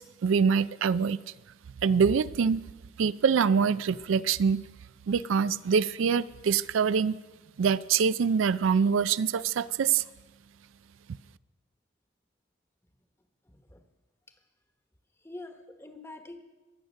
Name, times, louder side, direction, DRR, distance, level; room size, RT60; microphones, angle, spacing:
voice 1, 0.2-1.2 1.8-2.6 3.0-4.6 5.1-7.2 7.6-10.0, right 6 dB, 85° right, 17 dB, 0.4 m, -24 dB
voice 2, 13.5-13.8 15.2-16.4, left 2 dB, 15° left, 7 dB, 1.1 m, -45 dB
22.0 x 8.0 x 6.4 m, 1.2 s
head